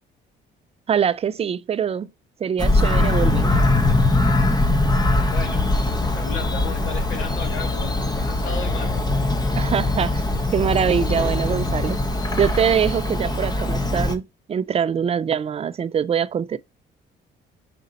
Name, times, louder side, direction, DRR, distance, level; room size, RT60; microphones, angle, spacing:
voice 1, 0.9-2.1 2.4-3.6 9.5-10.2 10.5-12.0 12.4-14.2 14.5-16.6, right 8 dB, 30° right, 0.3 m, -23 dB
Bird vocalization bird call bird song, 2.6-14.1, left 2 dB, 20° left, 0.7 m, -22 dB
voice 2, 5.3-9.0, left 5 dB, 80° left, 1.3 m, -35 dB
Musical instrument, 5.5-12.2, left 5 dB, 40° left, 1.2 m, -31 dB
5.1 x 2.7 x 3.9 m
cardioid pair, 90°, 20 cm